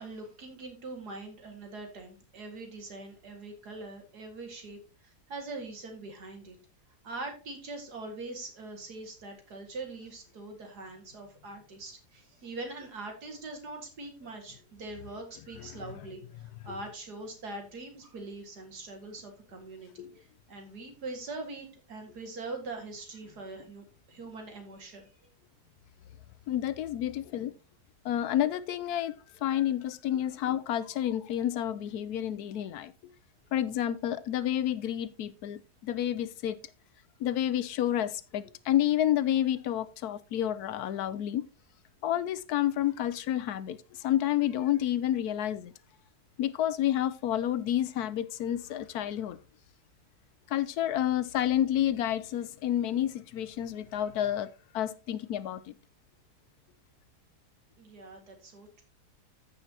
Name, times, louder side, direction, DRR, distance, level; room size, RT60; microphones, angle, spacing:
voice 1, 0.0-4.8 5.3-6.6 7.0-25.1 57.8-58.8, right 2 dB, 75° right, 2.6 m, -42 dB
voice 2, 26.5-27.5 28.0-29.1 29.4-32.9 33.5-36.6 37.2-41.5 42.0-45.7 46.4-49.4 50.5-54.5 54.7-55.7, left 11 dB, 75° left, 1.1 m, -29 dB
15.0 x 5.6 x 2.8 m
omnidirectional pair, 1.7 m